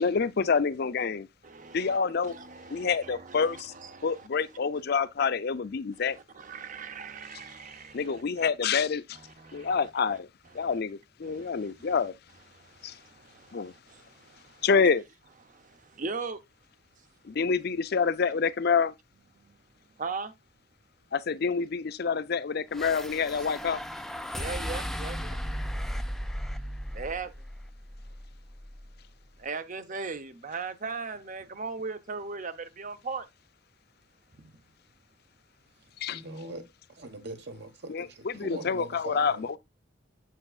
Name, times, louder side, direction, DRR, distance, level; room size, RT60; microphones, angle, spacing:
voice 1, 0.0-1.3 1.7-2.4 2.7-3.7 4.0-6.2 7.9-9.0 9.5-10.3 10.5-12.1 12.8-12.9 13.5-13.7 14.6-15.0 17.3-18.9 21.1-23.8 36.0-36.2 37.9-38.0 38.4-39.5, left 5 dB, 55° left, 0.5 m, -27 dB
voice 2, 1.4-2.0 2.2-4.3 6.0-8.5 9.1-9.9 10.5-10.8 11.2-11.7 12.5-14.7 15.4-16.4 19.4-19.6 20.0-20.3 23.4-23.5 24.3-25.4 26.9-27.3 29.4-33.3 34.4-34.5, right 4 dB, 45° right, 0.8 m, -39 dB
sound 1, 22.7-29.1, equal, ahead, 0.4 m, -36 dB
voice 3, 35.8-39.5, right 2 dB, 60° right, 1.3 m, -42 dB
7.9 x 7.5 x 2.4 m
head